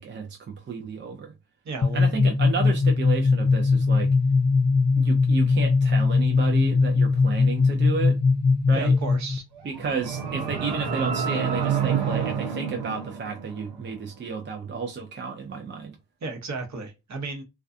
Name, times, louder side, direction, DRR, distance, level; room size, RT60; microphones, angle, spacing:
voice 1, 0.0-1.3 1.9-4.1 5.0-8.2 8.7-9.0 9.6-16.0, right 5 dB, 30° right, 0.5 m, -32 dB
voice 2, 1.6-2.0 8.7-9.4 16.2-17.4, right 3 dB, 45° right, 0.9 m, -34 dB
sound 1, 1.8-9.4, left 4 dB, 25° left, 0.4 m, -20 dB
sound 2, 9.6-13.8, right 7 dB, 75° right, 0.7 m, -28 dB
2.3 x 2.3 x 2.5 m
supercardioid pair, 50°, 40 cm